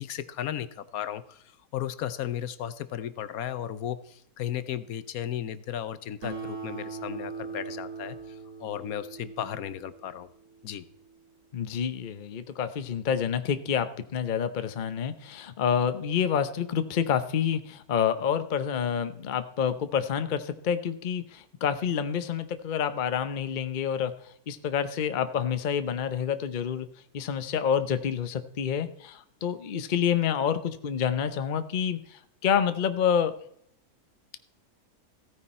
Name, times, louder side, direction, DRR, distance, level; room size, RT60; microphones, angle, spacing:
voice 1, 0.0-10.3 10.6-10.8, left 10 dB, 75° left, 14 dB, 1.1 m, -35 dB
Acoustic guitar, 6.2-11.1, right 5 dB, 90° right, 2.7 m, -41 dB
voice 2, 11.5-24.1 24.5-26.9 27.1-33.3, left 8 dB, 45° left, 11 dB, 0.7 m, -28 dB
15.0 x 9.6 x 4.3 m, 0.71 s
omnidirectional pair, 1.6 m